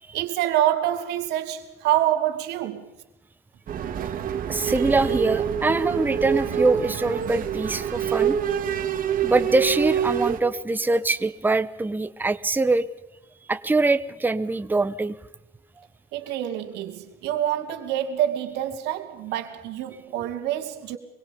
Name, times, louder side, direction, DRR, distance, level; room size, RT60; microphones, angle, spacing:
voice 1, 0.1-2.9 16.1-21.0, right 12 dB, 90° right, 2.4 m, -26 dB
sound 1, 3.7-10.4, right 8 dB, 55° right, 2.4 m, -26 dB
voice 2, 4.5-8.4 9.2-12.9 13.5-15.1, right 3 dB, 10° right, 0.9 m, -23 dB
24.5 x 24.0 x 5.3 m
cardioid pair, 110°, 17 cm